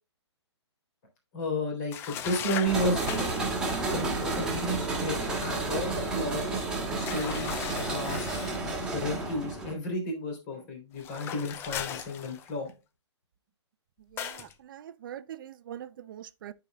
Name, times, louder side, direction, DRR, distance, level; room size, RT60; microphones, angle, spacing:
voice 1, 1.3-3.0 3.9-7.6 7.9-8.3 8.9-12.7, equal, 35° left, 3.2 m, -32 dB
sound 1, 1.9-3.5 7.1-8.6 11.0-12.7 14.2-14.5, left 9 dB, 15° left, 0.4 m, -38 dB
sound 2, 2.7-9.7, right 3 dB, 5° right, 2.1 m, -31 dB
voice 2, 14.1-16.5, right 10 dB, 45° right, 0.6 m, -43 dB
13.5 x 4.9 x 2.2 m
figure-of-eight pair, 135°, 15 cm